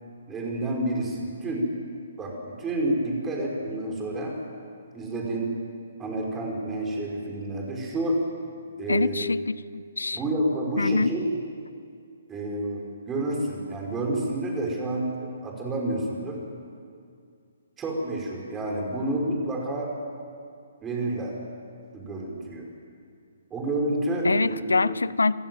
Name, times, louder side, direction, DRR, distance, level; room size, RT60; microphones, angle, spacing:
voice 1, 0.3-1.7 2.2-4.4 4.9-5.6 6.0-8.3 8.8-9.2 10.1-11.3 12.3-16.4 17.8-20.0 20.8-21.4 21.9-22.7 23.5-25.0, right 1 dB, 15° right, -1 dB, 5.2 m, -29 dB
voice 2, 8.9-10.2 10.8-11.1 24.2-25.3, left 3 dB, 90° left, 19 dB, 0.6 m, -25 dB
27.5 x 15.5 x 7.8 m, 2.3 s
hypercardioid pair, 140°, 0 cm